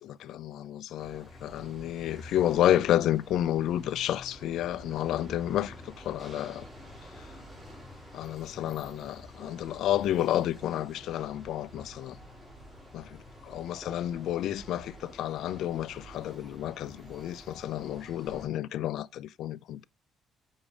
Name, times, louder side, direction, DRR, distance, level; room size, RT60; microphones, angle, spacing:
voice 1, 0.0-6.6 7.2-7.3 8.1-12.2 12.9-13.2 13.5-19.8, left 12 dB, 70° left, 0.4 m, -30 dB
sound 1, 1.0-18.5, equal, ahead, 3.9 m, -48 dB
7.1 x 5.2 x 4.8 m
cardioid pair, 125°, 0 cm